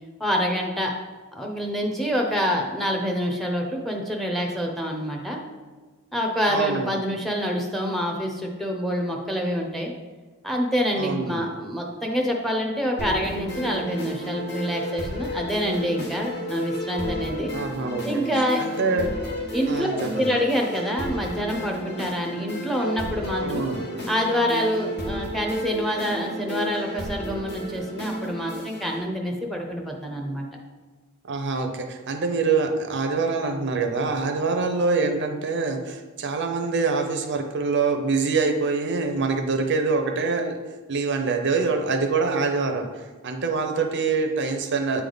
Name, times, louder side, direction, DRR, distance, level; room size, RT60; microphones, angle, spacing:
voice 1, 0.2-0.9 1.3-5.4 6.1-9.9 10.4-17.5 18.0-18.6 19.5-23.6 24.1-30.5, equal, ahead, 1 dB, 0.7 m, -26 dB
voice 2, 6.5-6.9 11.0-11.4 17.5-18.2 18.6-19.1 19.7-20.3 23.4-23.8 31.3-40.6 40.9-42.9 43.2-45.0, right 4 dB, 55° right, 5 dB, 0.6 m, -25 dB
sound 1, 13.0-29.0, equal, 50° left, 1.3 m, -32 dB
8.5 x 3.4 x 3.9 m, 1.3 s
head